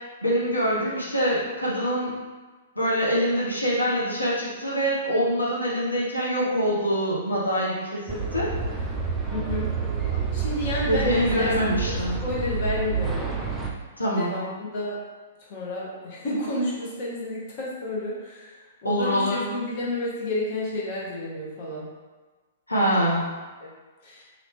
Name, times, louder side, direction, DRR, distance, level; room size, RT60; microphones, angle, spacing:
voice 1, 0.2-2.1 2.8-8.5 10.9-12.2 14.0-14.3 18.8-19.4 22.7-23.3, equal, 85° left, -7 dB, 0.8 m, -24 dB
sound 1, 8.1-13.7, right 5 dB, 15° right, 0.5 m, -29 dB
voice 2, 9.3-9.7 10.3-12.0 12.2-13.3 14.2-15.0 15.5-21.9 23.6-23.7 24.0-24.3, left 1 dB, 45° left, -5 dB, 1.0 m, -31 dB
3.0 x 2.7 x 3.4 m, 1.3 s
figure-of-eight pair, 110°, 0 cm